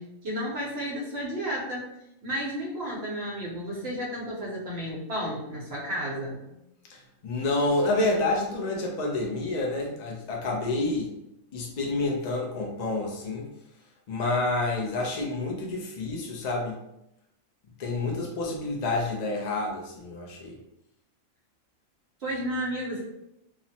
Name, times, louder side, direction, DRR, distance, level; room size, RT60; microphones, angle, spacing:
voice 1, 0.0-1.9 2.2-6.6 22.2-23.0, equal, 55° right, -4 dB, 1.0 m, -32 dB
voice 2, 6.9-11.2 11.5-13.5 14.1-16.8 17.8-20.6, left 2 dB, 60° left, -1 dB, 0.4 m, -28 dB
2.8 x 2.1 x 2.7 m, 0.84 s
omnidirectional pair, 1.4 m